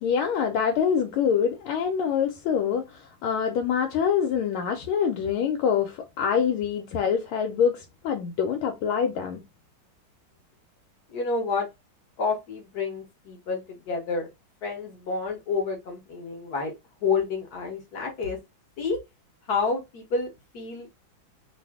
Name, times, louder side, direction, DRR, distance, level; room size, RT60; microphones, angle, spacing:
voice 1, 0.0-9.4, left 7 dB, 85° left, 1.4 m, -25 dB
voice 2, 11.1-11.7 12.2-14.3 14.6-16.7 17.0-18.4 18.8-19.0 19.5-20.9, left 4 dB, 55° left, 1.2 m, -29 dB
3.3 x 2.4 x 3.4 m
omnidirectional pair, 2.3 m